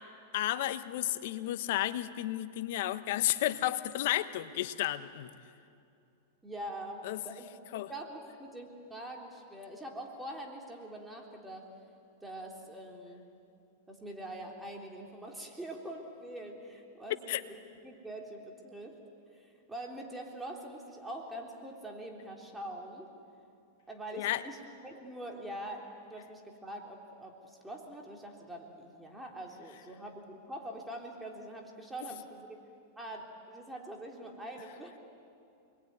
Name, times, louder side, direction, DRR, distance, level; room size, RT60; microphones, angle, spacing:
voice 1, 0.3-5.3 7.0-7.2 7.7-7.9 17.3-17.4 24.1-24.4, left 14 dB, 65° left, 11 dB, 1.3 m, -32 dB
voice 2, 6.4-7.5 7.9-11.7 12.2-13.3 13.9-17.6 17.8-19.0 19.3-23.1 23.9-32.5 33.0-35.0, right 1 dB, 10° right, 0 dB, 3.5 m, -44 dB
28.5 x 21.5 x 9.6 m, 2.6 s
hypercardioid pair, 115°, 0 cm